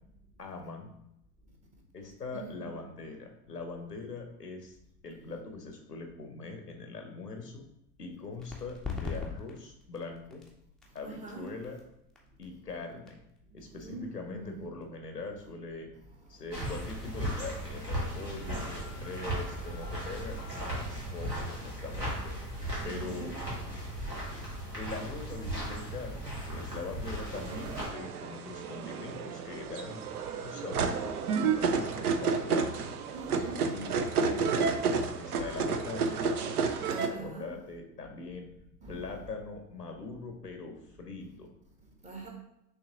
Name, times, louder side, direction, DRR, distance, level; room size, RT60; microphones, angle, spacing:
voice 1, 0.4-0.9 1.9-4.8 5.0-7.6 8.0-10.4 10.9-11.8 12.4-13.2 13.5-15.9 16.3-22.3 22.8-23.3 24.7-30.0 30.4-31.0 31.7-32.7 33.6-36.2 37.0-38.5 38.9-41.5, left 3 dB, 85° left, 0.8 m, -42 dB
voice 2, 2.3-2.7 11.0-11.5 13.8-14.6 16.4-16.5 18.1-21.2 22.9-23.4 33.1-33.7 36.9-37.5 38.8-39.0 42.0-42.3, right 3 dB, 15° right, 0.9 m, -45 dB
sound 1, 8.4-15.7, left 5 dB, ahead, 0.5 m, -44 dB
sound 2, 16.5-27.9, right 1 dB, 85° right, 1.6 m, -37 dB
sound 3, 27.3-37.1, right 5 dB, 70° right, 0.6 m, -31 dB
6.0 x 2.9 x 2.7 m
figure-of-eight pair, 80°, 47 cm